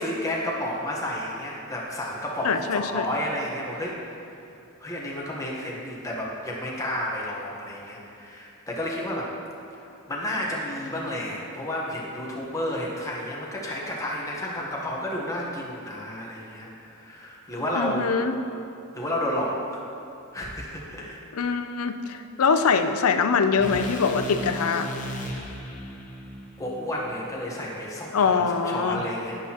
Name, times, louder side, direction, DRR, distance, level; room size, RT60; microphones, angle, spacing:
voice 1, 0.0-4.0 4.8-9.3 10.1-18.1 18.9-19.8 20.3-21.2 25.3-25.6 26.6-29.4, left 1 dB, 15° left, -3 dB, 1.1 m, -31 dB
voice 2, 2.4-3.1 17.8-18.4 21.3-24.9 28.1-29.0, left 5 dB, 80° left, 9 dB, 0.5 m, -23 dB
sound 1, 23.6-27.8, left 1 dB, 35° left, 1.0 m, -36 dB
9.9 x 9.4 x 2.9 m, 2.6 s
head